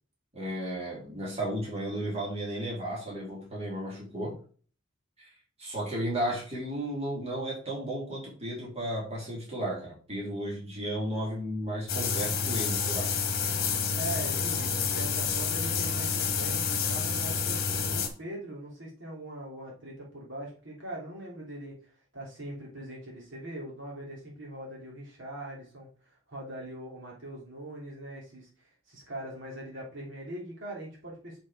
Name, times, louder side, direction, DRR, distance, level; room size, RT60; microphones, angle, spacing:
voice 1, 0.3-4.4 5.2-5.3 5.6-13.2 17.9-18.1, right 1 dB, 30° right, -5 dB, 3.4 m, -34 dB
sound 1, 11.9-18.1, left 5 dB, 50° left, 1.4 m, -29 dB
voice 2, 13.9-31.4, right 1 dB, 60° right, -3 dB, 3.0 m, -41 dB
7.3 x 5.0 x 4.9 m, 0.41 s
head